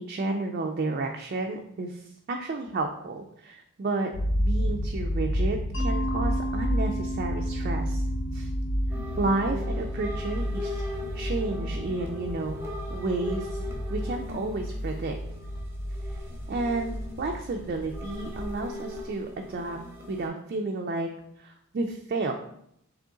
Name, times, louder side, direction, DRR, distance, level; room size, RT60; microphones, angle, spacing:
voice 1, 0.0-4.1 4.4-8.0 8.3-8.5 9.2-10.8 11.1-12.6 12.9-13.6 13.9-15.1 16.5-19.8 20.1-21.1 21.4-22.3, right 3 dB, 45° right, 2 dB, 0.3 m, -31 dB
sound 1, 4.1-18.6, equal, 85° left, 0.5 m, -31 dB
Mallet percussion, 5.7-10.5, right 1 dB, 60° left, 0.9 m, -36 dB
sound 2, 8.9-20.3, left 2 dB, 10° right, 0.7 m, -40 dB
3.7 x 3.0 x 3.7 m, 0.73 s
head